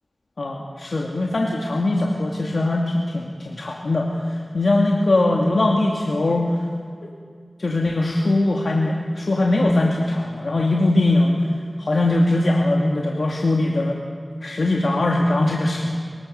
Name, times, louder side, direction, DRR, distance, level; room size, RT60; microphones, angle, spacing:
voice 1, 0.4-6.6 7.6-11.4 11.8-14.0 14.4-16.0, left 2 dB, 75° left, -1 dB, 2.3 m, -21 dB
24.5 x 24.0 x 6.6 m, 2.1 s
wide cardioid pair, 45°, 0 cm